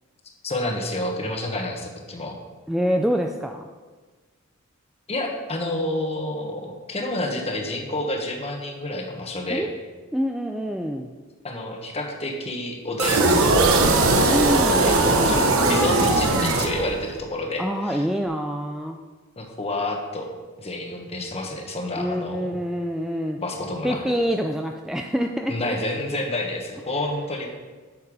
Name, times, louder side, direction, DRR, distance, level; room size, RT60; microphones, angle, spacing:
voice 1, 0.4-2.4 5.1-9.7 11.4-13.5 14.6-18.1 19.4-20.3 20.6-22.6 23.4-24.2 25.5-27.5, left 1 dB, 30° left, 2 dB, 1.4 m, -29 dB
voice 2, 2.7-3.7 9.5-9.7 10.1-11.1 14.3-15.5 16.0-16.1 17.6-19.0 22.0-23.4 23.8-25.8, equal, ahead, 3 dB, 0.4 m, -26 dB
sound 1, 13.0-17.2, right 2 dB, 75° right, 1.1 m, -19 dB
11.0 x 6.9 x 5.0 m, 1.4 s
head